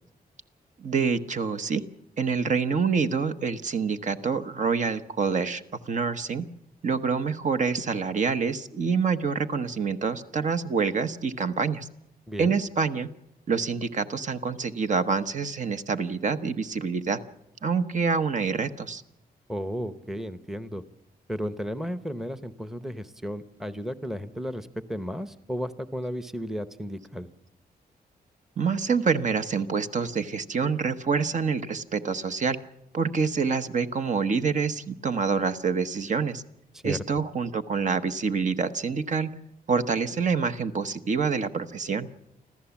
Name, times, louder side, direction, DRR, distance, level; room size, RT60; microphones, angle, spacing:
voice 1, 0.8-1.8 2.2-6.4 6.8-11.9 12.4-13.1 13.5-17.2 17.6-19.0 28.6-32.6 32.9-36.4 36.8-39.3 39.7-42.1, right 5 dB, 50° right, 10 dB, 1.0 m, -26 dB
voice 2, 12.3-12.6 19.5-20.8 21.3-27.3 36.7-37.0, equal, 5° right, 12 dB, 0.8 m, -34 dB
26.0 x 14.5 x 7.1 m, 0.85 s
wide cardioid pair, 120°, 16 cm